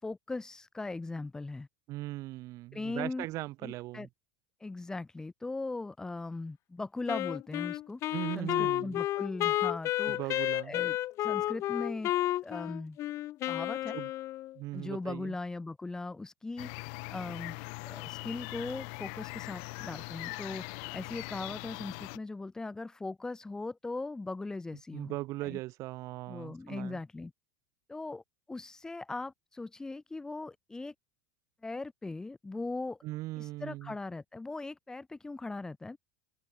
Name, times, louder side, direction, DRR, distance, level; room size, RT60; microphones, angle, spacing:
voice 1, 0.0-1.7 2.7-3.3 3.6-4.1 4.6-8.0 8.3-12.1 12.4-13.0 13.5-14.0 14.7-17.6 17.8-25.1 25.4-25.6 26.3-27.3 27.9-28.2 28.5-30.9 31.6-33.0 33.4-36.0, left 3 dB, 10° left, 5.9 m, -39 dB
voice 2, 1.9-4.1 8.1-9.0 10.1-10.8 13.9-14.1 14.6-15.3 24.9-27.0 33.0-33.9, right 18 dB, 45° right, 2.4 m, -39 dB
Wind instrument woodwind instrument, 7.1-14.6, left 15 dB, 40° left, 3.0 m, -32 dB
sound 1, 16.6-22.2, left 40 dB or more, 55° left, 1.7 m, -41 dB
open air
supercardioid pair, 155°, 8 cm